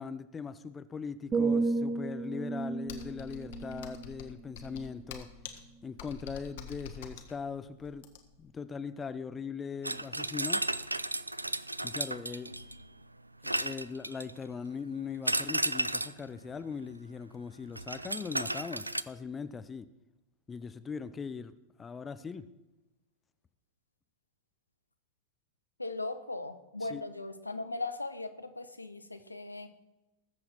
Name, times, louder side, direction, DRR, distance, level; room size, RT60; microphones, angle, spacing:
voice 1, 0.0-5.3 5.8-8.1 8.4-10.6 11.8-12.5 13.4-19.9 20.5-21.5 21.8-22.5 26.8-27.0, left 5 dB, 20° left, 13 dB, 0.6 m, -40 dB
sound 1, 1.3-5.2 5.7-6.0, right 3 dB, 20° right, 0.8 m, -33 dB
Computer keyboard, 2.9-8.5, left 7 dB, 55° left, 1.5 m, -46 dB
sound 2, 9.8-12.8 13.4-14.4 15.3-16.2 17.8-19.0, right 2 dB, 85° right, 0.4 m, -33 dB
voice 2, 25.8-29.7, left 2 dB, 85° left, 9 dB, 1.0 m, -38 dB
20.0 x 7.7 x 4.4 m, 1.0 s
figure-of-eight pair, 90°, 0 cm